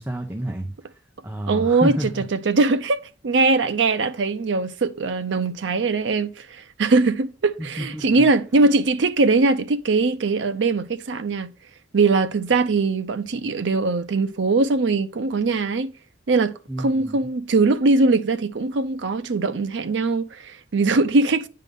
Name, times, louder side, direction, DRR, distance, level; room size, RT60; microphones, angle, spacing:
voice 1, 0.0-2.2 7.6-8.3 16.7-17.3, equal, 10° right, 0.8 m, -30 dB
voice 2, 1.5-1.9 2.3-3.0 3.2-11.5 11.9-15.9 16.3-21.5, right 3 dB, 80° right, 0.5 m, -21 dB
9.1 x 3.8 x 5.3 m
head